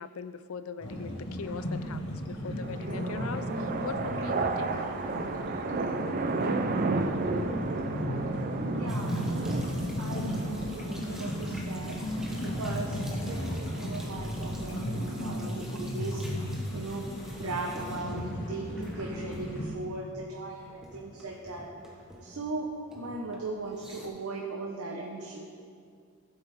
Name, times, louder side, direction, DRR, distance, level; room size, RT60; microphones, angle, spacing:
voice 1, 0.0-4.7, left 5 dB, 70° left, 12 dB, 0.5 m, -40 dB
sound 1, 0.8-19.7, equal, 55° left, 1.9 m, -35 dB
sound 2, 2.6-15.6, right 3 dB, 45° right, 0.6 m, -34 dB
voice 2, 8.8-9.6 10.0-16.2 16.7-21.7 22.2-25.4, right 3 dB, 80° right, -1 dB, 1.0 m, -38 dB
sound 3, 8.9-20.2 20.5-22.6 22.9-24.1, equal, ahead, 1.3 m, -48 dB
15.0 x 8.1 x 3.6 m, 2.2 s
head